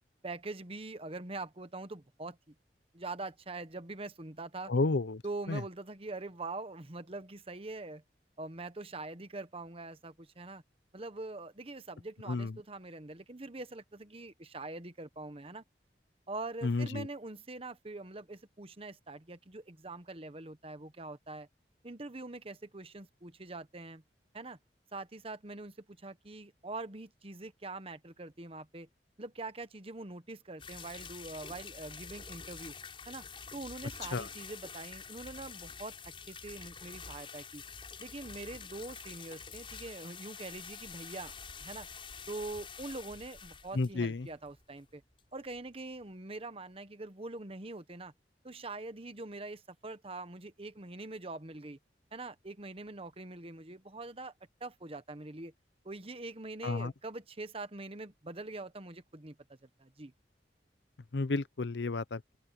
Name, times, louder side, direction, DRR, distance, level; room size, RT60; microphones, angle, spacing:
voice 1, 0.2-2.5 2.9-4.7 5.2-8.0 8.4-10.6 10.9-15.6 16.3-21.5 21.8-24.0 24.3-24.6 24.9-28.9 29.2-32.7 33.1-33.2 33.5-37.6 38.0-41.3 41.6-41.9 42.3-45.0 45.3-48.1 48.4-51.8 52.1-54.3 54.6-55.5 55.8-59.4 59.8-60.1, right 2 dB, 35° right, 1.2 m, -43 dB
voice 2, 4.7-5.2 5.5-5.6 12.3-12.5 16.6-17.1 34.1-34.3 43.7-44.3 56.6-56.9 61.1-62.2, left 3 dB, 85° left, 0.7 m, -31 dB
sound 1, 30.6-44.9 45.2-45.3 45.5-45.6 46.1-46.2, left 5 dB, 30° left, 5.9 m, -47 dB
open air
head